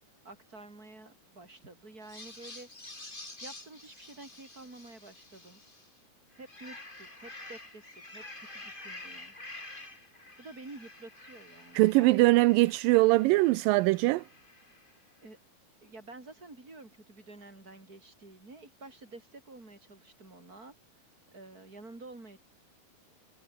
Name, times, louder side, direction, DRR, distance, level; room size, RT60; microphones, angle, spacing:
voice 1, 0.2-2.7 3.4-5.6 6.4-9.3 10.4-12.3 15.2-15.4 15.8-22.4, right 2 dB, 25° right, 6.5 m, -50 dB
sound 1, 2.0-5.9 6.3-15.0, left 2 dB, 15° left, 3.6 m, -49 dB
voice 2, 11.8-14.2, right 21 dB, 85° right, 2.3 m, -22 dB
omnidirectional pair, 3.9 m